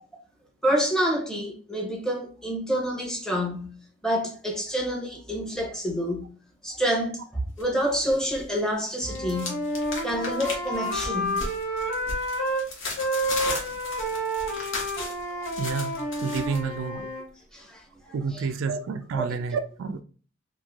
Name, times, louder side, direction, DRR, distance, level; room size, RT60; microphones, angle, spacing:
voice 1, 0.6-3.7 4.0-6.3 6.6-9.6 10.0-11.4 15.4-15.5 17.5-17.8 18.3-18.4 19.2-19.3, equal, 5° left, 0.7 m, -28 dB
sound 1, 7.6-8.5 8.7-16.6, left 3 dB, 90° left, 0.9 m, -36 dB
Wind instrument woodwind instrument, 9.0-12.6 13.0-17.2, equal, 65° left, 1.3 m, -30 dB
voice 2, 11.8-12.3 15.6-15.9 16.2-17.1 18.1-20.0, right 5 dB, 85° right, 0.3 m, -30 dB
3.1 x 2.5 x 2.4 m
head